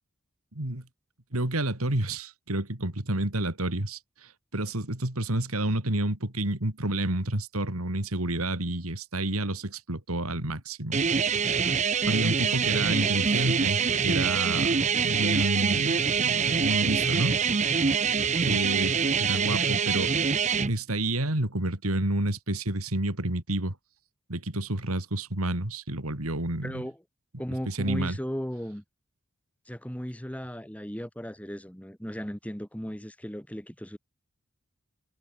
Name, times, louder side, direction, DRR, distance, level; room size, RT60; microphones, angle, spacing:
voice 1, 0.5-0.8 1.3-11.1 12.1-17.4 18.4-20.4 20.7-23.8 24.3-26.8 27.7-28.2, right 1 dB, 90° right, 3.5 m, -29 dB
sound 1, 10.9-20.7, right 6 dB, 35° right, 0.7 m, -25 dB
voice 2, 26.6-27.0 27.4-28.8 29.7-34.0, equal, 5° left, 1.6 m, -36 dB
head